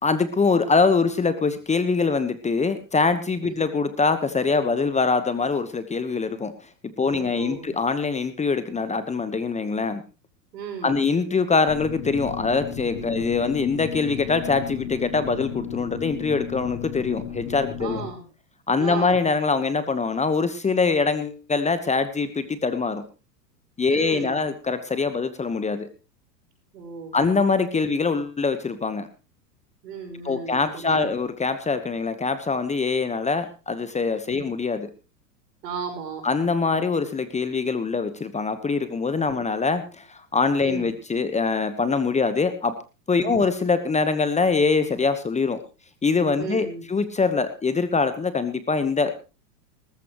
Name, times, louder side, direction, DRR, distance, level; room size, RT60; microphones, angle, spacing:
voice 1, 0.0-6.5 7.0-10.0 10.8-18.0 18.7-23.0 23.8-25.9 27.1-29.1 30.2-34.9 36.2-42.7 43.1-45.6 46.0-49.1, left 4 dB, 15° left, 11 dB, 1.2 m, -23 dB
voice 2, 7.0-7.8 10.5-11.0 13.1-13.3 17.8-18.2 18.8-19.2 23.9-24.4 26.7-27.2 29.8-31.1 34.3-34.5 35.6-36.2 39.4-39.5 40.6-40.9 43.2-43.4 46.4-46.9, right 6 dB, 75° right, 4 dB, 5.8 m, -35 dB
sound 1, 11.7-18.1, left 8 dB, 65° left, 4.7 m, -34 dB
19.0 x 14.0 x 3.1 m, 0.32 s
hypercardioid pair, 105°, 49 cm